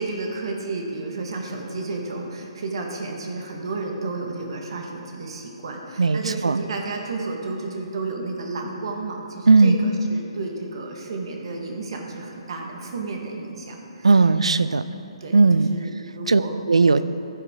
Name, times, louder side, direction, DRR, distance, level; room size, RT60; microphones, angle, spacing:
voice 1, 0.0-14.1 14.5-14.7 15.2-16.6, right 3 dB, 55° right, 1 dB, 1.5 m, -32 dB
voice 2, 6.0-6.6 9.5-9.8 14.0-14.8 15.3-15.7 16.3-16.4 16.7-17.0, right 4 dB, 75° right, 14 dB, 0.4 m, -16 dB
14.5 x 7.7 x 3.7 m, 2.6 s
figure-of-eight pair, 135°, 3 cm